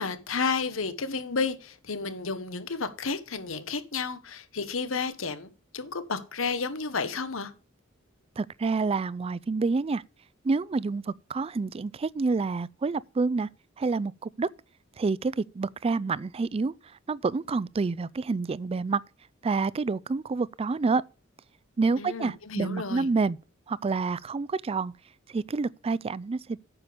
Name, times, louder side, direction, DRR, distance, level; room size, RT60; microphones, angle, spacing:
voice 1, 0.0-7.5 22.0-23.1, left 4 dB, 75° left, 1.3 m, -32 dB
voice 2, 8.4-10.0 10.4-13.5 13.8-14.5 15.0-16.7 17.1-19.0 19.4-21.0 21.8-23.4 23.7-24.9 25.3-26.6, right 4 dB, 30° right, 0.4 m, -28 dB
9.2 x 6.9 x 5.1 m
head